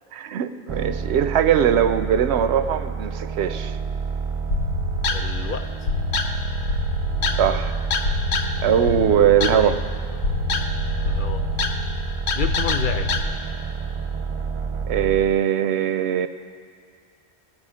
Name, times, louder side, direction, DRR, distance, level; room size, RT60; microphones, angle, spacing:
voice 1, 0.1-3.7 7.4-7.7 8.6-9.8 14.9-16.3, right 9 dB, 80° right, 11 dB, 0.9 m, -20 dB
sound 1, 0.7-15.4, right 5 dB, 50° right, 0.4 m, -30 dB
sound 2, 4.5-13.2, left 3 dB, 90° left, 1.1 m, -26 dB
voice 2, 5.1-5.7 9.5-9.7 10.1-10.2 11.0-11.4 12.3-13.1, left 7 dB, 60° left, 8 dB, 0.7 m, -30 dB
19.0 x 8.9 x 4.9 m, 2.1 s
omnidirectional pair, 1.1 m